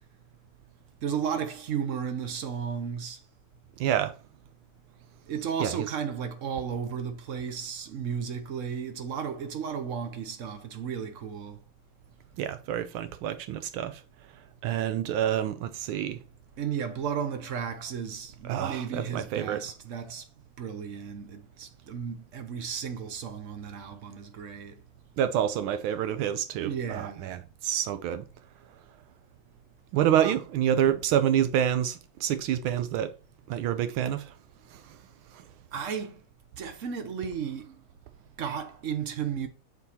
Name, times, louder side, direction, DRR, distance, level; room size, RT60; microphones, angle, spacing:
voice 1, 1.0-3.2 5.3-11.6 16.6-20.3 20.6-24.8 26.6-27.4 30.2-30.3 35.7-36.2 36.6-37.8 38.4-39.5, right 7 dB, 60° right, 0.8 m, -34 dB
voice 2, 3.8-4.1 5.6-5.7 12.4-13.9 14.6-16.2 18.5-19.6 25.2-27.4 27.6-28.2 29.9-33.1 33.5-34.2, right 10 dB, 80° right, 1.5 m, -27 dB
6.8 x 4.5 x 4.2 m
omnidirectional pair, 2.3 m